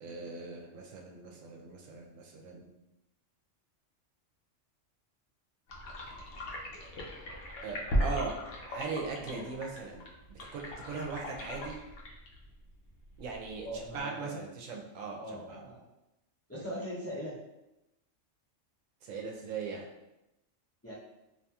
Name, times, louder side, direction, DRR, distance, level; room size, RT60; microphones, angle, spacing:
voice 1, 0.0-2.7 7.6-8.3 8.7-11.8 13.2-15.6 16.5-16.7 19.0-19.9, right 4 dB, 85° right, 0 dB, 1.0 m, -40 dB
sound 1, 5.7-14.0, equal, 70° left, 0.9 m, -38 dB
voice 2, 13.6-14.4 15.2-15.8 16.5-17.4 20.8-20.9, equal, 15° left, -9 dB, 0.5 m, -40 dB
2.8 x 2.6 x 2.3 m, 0.93 s
omnidirectional pair, 1.3 m